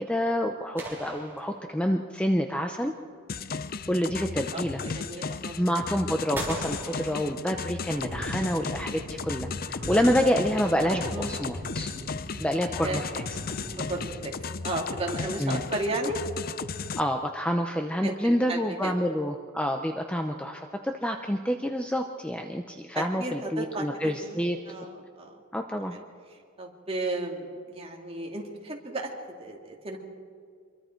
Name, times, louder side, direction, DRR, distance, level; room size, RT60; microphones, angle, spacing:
voice 1, 0.0-2.9 3.9-4.8 5.6-11.9 12.4-13.2 15.4-15.6 16.9-24.6 25.5-26.0, equal, 5° left, 4 dB, 0.7 m, -28 dB
sound 1, 0.8-2.2 6.3-7.9, right 1 dB, 10° right, 3.7 m, -39 dB
sound 2, 3.3-17.0, left 5 dB, 45° left, 0.6 m, -35 dB
voice 2, 4.5-5.6 8.4-8.5 11.1-11.4 12.8-13.0 13.7-14.3 14.6-16.2 18.0-18.9 22.9-25.4 25.9-26.0 26.6-29.1 29.4-30.0, right 2 dB, 30° right, 0 dB, 2.5 m, -34 dB
sound 3, 7.9-15.3, right 1 dB, 55° right, 2.9 m, -41 dB
25.5 x 23.0 x 4.5 m, 2.2 s
head